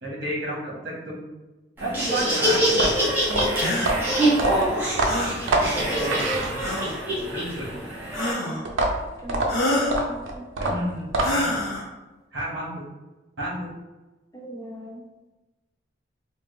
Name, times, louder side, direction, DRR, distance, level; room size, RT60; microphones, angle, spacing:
voice 1, 0.0-1.2 1.8-3.0 6.0-6.7 7.3-7.8 10.6-11.6 12.3-12.8 13.4-13.7, right 1 dB, 65° right, -5 dB, 1.2 m, -31 dB
Laughter, 1.8-8.3, right 1 dB, 10° right, 0.8 m, -25 dB
sound 1, 2.7-7.0 8.7-11.6, right 2 dB, 85° right, 0.5 m, -26 dB
voice 2, 3.3-3.6 8.3-8.8 9.2-9.7 10.0-10.4 14.3-15.0, right 1 dB, 20° left, -2 dB, 0.4 m, -38 dB
sound 2, 3.6-3.9 5.1-5.4 6.6-7.0 8.1-8.7 9.5-10.0 11.2-11.9, left 1 dB, 85° left, 0.6 m, -27 dB
3.3 x 2.0 x 3.2 m, 1.1 s
head